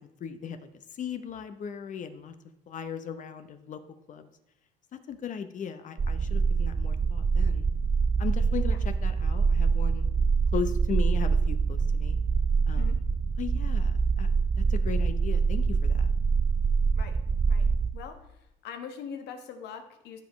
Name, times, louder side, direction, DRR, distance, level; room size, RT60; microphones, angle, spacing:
voice 1, 0.2-0.6 0.9-2.3 2.7-3.8 4.1-4.3 5.1-7.7 8.2-8.8 9.0-10.1 10.5-12.2 12.7-12.9 13.4-14.3 14.7-16.1, left 7 dB, 50° left, 9 dB, 0.8 m, -37 dB
sound 1, 6.0-17.9, right 5 dB, 25° right, 0.3 m, -25 dB
voice 2, 17.9-18.3 18.6-20.2, left 7 dB, 80° left, 6 dB, 1.2 m, -42 dB
14.5 x 5.3 x 3.1 m, 0.83 s
cardioid pair, 110°, 17 cm